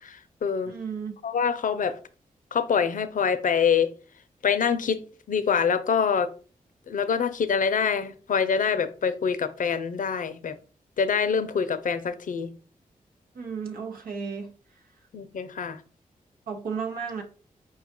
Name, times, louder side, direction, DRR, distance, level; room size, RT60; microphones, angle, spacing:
voice 1, 0.0-0.7 1.2-2.0 2.5-3.9 4.4-5.0 5.3-6.3 6.9-10.6 11.0-12.5 15.1-15.8, left 6 dB, 65° left, 0.6 m, -25 dB
voice 2, 0.6-1.1 13.3-14.8 16.5-17.2, right 6 dB, 85° right, 0.8 m, -34 dB
4.5 x 2.3 x 4.3 m
cardioid pair, 45°, 15 cm